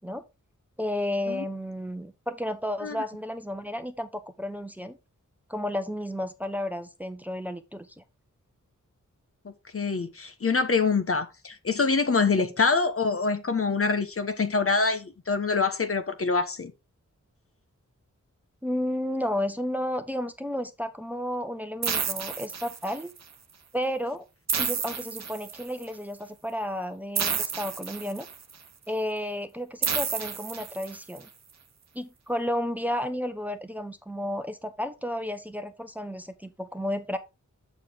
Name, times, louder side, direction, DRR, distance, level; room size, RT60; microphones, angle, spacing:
voice 1, 0.8-5.0 5.5-8.0 12.4-12.5 18.6-23.1 23.7-24.2 24.6-28.3 28.9-31.3 31.9-37.2, left 1 dB, 5° right, 0.9 m, -32 dB
voice 2, 9.4-16.7, left 4 dB, 45° left, 1.0 m, -25 dB
sound 1, 21.8-23.2 24.5-25.9 27.2-28.5 29.8-31.2, right 6 dB, 60° right, 0.9 m, -30 dB
6.7 x 6.4 x 3.7 m
wide cardioid pair, 75°, 31 cm